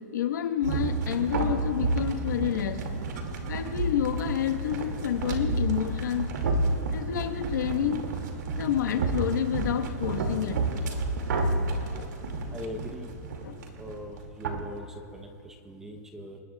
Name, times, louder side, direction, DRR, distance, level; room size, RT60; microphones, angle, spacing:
voice 1, 0.1-2.8 3.5-6.3 6.9-8.0 8.5-10.6 12.0-12.1 12.5-12.6 13.4-13.6, left 10 dB, 80° left, 5 dB, 1.4 m, -29 dB
sound 1, 0.6-14.7, right 3 dB, 80° right, 2.4 m, -30 dB
voice 2, 12.5-13.1 13.8-16.4, equal, 5° right, 4 dB, 0.9 m, -41 dB
28.5 x 20.0 x 2.4 m, 2.6 s
supercardioid pair, 175°, 10 cm